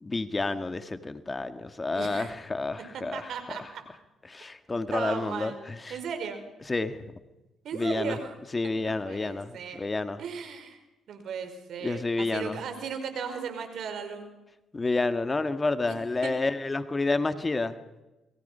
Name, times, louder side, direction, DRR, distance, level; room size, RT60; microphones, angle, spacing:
voice 1, 0.0-3.3 3.6-3.7 4.3-6.0 6.7-7.0 7.7-8.2 8.5-10.2 11.8-12.6 14.7-17.8, left 3 dB, 30° left, 10 dB, 1.8 m, -29 dB
voice 2, 1.9-2.3 2.9-3.8 4.9-5.6 5.9-6.4 7.6-8.3 8.6-9.8 10.2-10.8 11.1-14.3 15.9-16.0 16.2-16.3, right 6 dB, 70° right, 7 dB, 5.0 m, -36 dB
29.5 x 22.5 x 5.7 m, 1.0 s
supercardioid pair, 60°, 0 cm